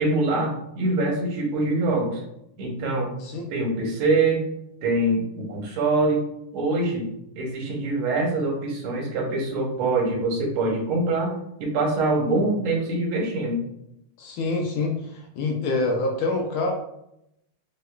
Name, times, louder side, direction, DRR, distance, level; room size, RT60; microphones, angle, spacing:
voice 1, 0.0-2.2 2.6-3.1 3.5-4.4 4.8-6.2 6.5-13.6, right 2 dB, 80° right, 0 dB, 1.7 m, -24 dB
voice 2, 14.2-16.7, left 3 dB, 75° left, 2 dB, 1.4 m, -26 dB
4.9 x 2.3 x 2.2 m, 0.79 s
omnidirectional pair, 2.4 m